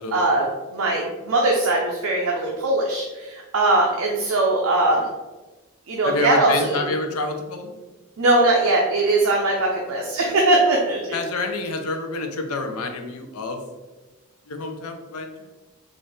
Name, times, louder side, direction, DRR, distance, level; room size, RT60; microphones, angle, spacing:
voice 1, 0.1-0.5 0.7-5.1 5.9-6.9 8.2-11.2, right 2 dB, 65° right, -1 dB, 0.5 m, -20 dB
voice 2, 6.0-7.8 11.1-13.6 14.5-15.3, left 3 dB, 75° left, 5 dB, 0.5 m, -28 dB
4.0 x 2.5 x 3.4 m, 1.2 s
head